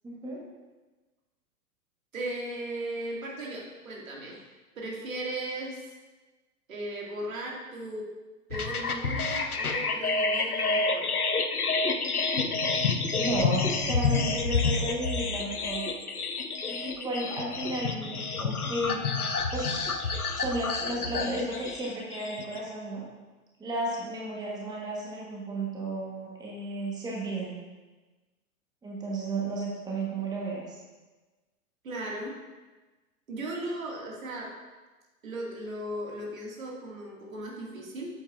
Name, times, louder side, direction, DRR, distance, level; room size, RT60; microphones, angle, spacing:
voice 1, 2.1-4.4 4.8-5.8 6.7-8.1 8.5-11.1 31.8-32.3 33.3-34.5 35.2-38.1, right 1 dB, 65° right, -3 dB, 2.2 m, -36 dB
sound 1, 8.5-22.6, left 4 dB, 85° left, 0.7 m, -29 dB
voice 2, 13.2-15.8 16.7-19.0 19.5-19.9 20.3-23.0 23.6-27.6 28.8-30.8, right 1 dB, 10° right, -4 dB, 1.2 m, -33 dB
8.5 x 7.6 x 2.5 m, 1.2 s
figure-of-eight pair, 100°, 43 cm